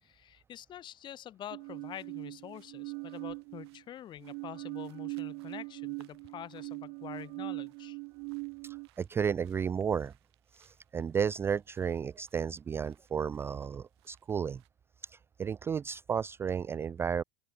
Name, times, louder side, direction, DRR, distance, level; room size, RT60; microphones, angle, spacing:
voice 1, 0.0-8.0, left 11 dB, 35° left, 2.8 m, -46 dB
sound 1, 1.5-3.8 4.2-8.9, right 32 dB, 65° right, 0.7 m, -41 dB
sound 2, 1.6-14.7, right 21 dB, 90° right, 7.4 m, -70 dB
voice 2, 8.6-10.1 10.5-14.6 15.0-17.2, right 7 dB, 20° right, 0.3 m, -33 dB
open air
cardioid pair, 145°, 13 cm